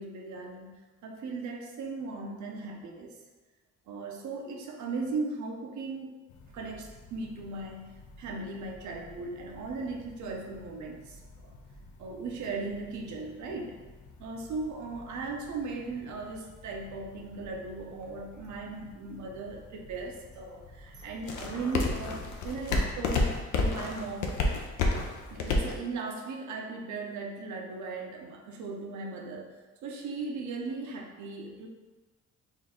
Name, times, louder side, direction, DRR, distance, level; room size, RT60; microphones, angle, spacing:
voice 1, 0.0-3.2 3.9-6.2 6.5-11.5 12.0-13.8 14.2-24.4 25.0-29.5 29.8-31.7, right 3 dB, 75° right, 2 dB, 0.8 m, -38 dB
sound 1, 6.3-25.8, left 2 dB, 75° left, 0.7 m, -36 dB
4.5 x 2.6 x 3.7 m, 1.2 s
cardioid pair, 90°, 30 cm